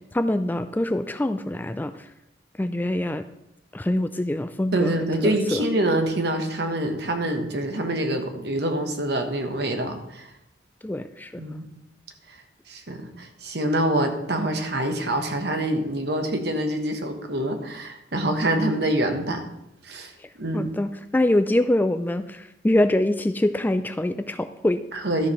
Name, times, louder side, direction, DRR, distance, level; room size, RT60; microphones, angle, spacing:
voice 1, 0.1-1.9 2.6-3.2 3.7-5.0 5.2-5.6 10.8-11.4 20.5-24.8, left 1 dB, 10° left, 10 dB, 0.3 m, -24 dB
voice 2, 4.7-10.3 11.4-11.7 12.7-19.4 19.8-20.1 20.4-20.7 24.9-25.3, right 1 dB, 60° right, 5 dB, 1.3 m, -25 dB
13.0 x 5.0 x 5.6 m, 0.83 s
head